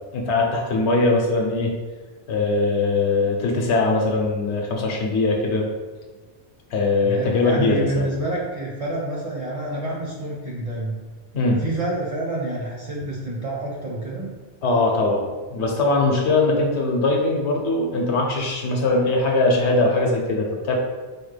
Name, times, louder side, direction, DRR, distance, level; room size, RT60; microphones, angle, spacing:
voice 1, 0.1-1.7 2.3-5.6 6.7-8.0 11.3-11.6 14.6-15.2 15.5-20.7, left 2 dB, 75° left, 0 dB, 0.9 m, -21 dB
voice 2, 7.0-11.0 11.5-14.3, right 2 dB, 40° right, -4 dB, 0.6 m, -28 dB
4.6 x 2.1 x 3.2 m, 1.4 s
omnidirectional pair, 1.2 m